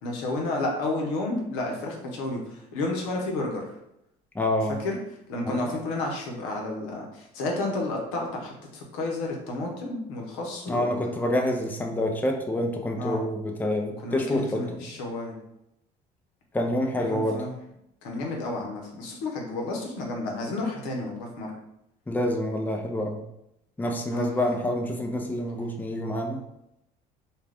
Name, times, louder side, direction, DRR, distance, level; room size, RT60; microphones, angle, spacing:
voice 1, 0.0-3.6 4.8-5.0 5.3-11.1 13.0-13.2 14.0-15.4 17.0-17.5 18.0-21.5 24.1-24.3, left 2 dB, 75° left, 0 dB, 0.8 m, -31 dB
voice 2, 4.3-4.8 5.5-5.6 10.7-14.8 16.5-17.4 22.1-23.2 23.8-26.4, left 1 dB, 10° left, 3 dB, 0.5 m, -27 dB
2.4 x 2.3 x 3.3 m, 0.82 s
hypercardioid pair, 65°, 21 cm